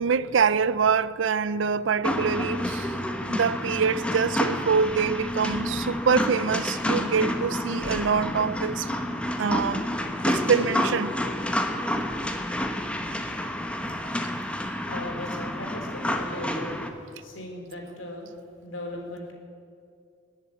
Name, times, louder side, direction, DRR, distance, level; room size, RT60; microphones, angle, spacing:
voice 1, 0.0-8.9 9.4-9.8 10.3-11.2, right 6 dB, 75° right, 0.5 m, -25 dB
sound 1, 2.0-16.9, left 1 dB, 5° left, 0.9 m, -29 dB
voice 2, 14.9-16.8 17.2-18.3 18.6-19.3, left 1 dB, 85° left, 3.5 m, -37 dB
21.0 x 7.4 x 8.3 m
head